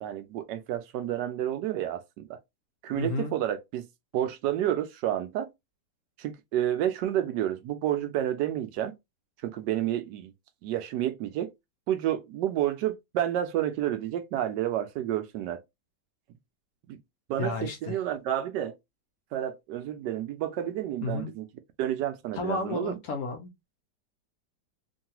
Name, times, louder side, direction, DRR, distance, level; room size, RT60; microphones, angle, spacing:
voice 1, 0.0-2.4 2.8-3.9 4.1-5.5 6.2-8.9 9.4-10.3 10.6-11.5 11.9-15.6 16.9-17.0 17.3-18.7 19.3-21.5 21.8-23.0, right 11 dB, 85° right, 1.2 m, -30 dB
voice 2, 3.0-3.3 17.4-18.0 21.0-21.3 22.3-23.5, left 3 dB, 70° left, 1.1 m, -32 dB
3.2 x 2.3 x 2.8 m
omnidirectional pair, 1.8 m